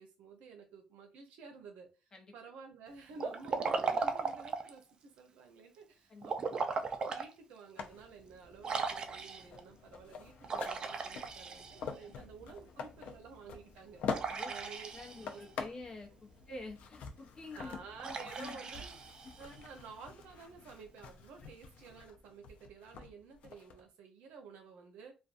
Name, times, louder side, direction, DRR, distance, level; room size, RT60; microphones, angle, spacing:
voice 1, 0.0-6.7 7.0-14.9 15.2-15.4 17.5-19.0 19.4-25.1, right 5 dB, 85° right, 0.7 m, -52 dB
Liquid, 3.2-4.8 6.2-7.3 7.8-7.9 8.6-9.6 10.4-12.1 14.1-15.4 18.0-19.6, right 4 dB, 35° right, 0.3 m, -37 dB
sound 1, 7.8-23.8, left 6 dB, 65° left, 0.4 m, -46 dB
voice 2, 14.3-17.7 18.0-18.6 19.2-19.3 21.9-22.0, left 2 dB, 30° left, 0.7 m, -49 dB
2.5 x 2.2 x 2.5 m
cardioid pair, 125°, 2 cm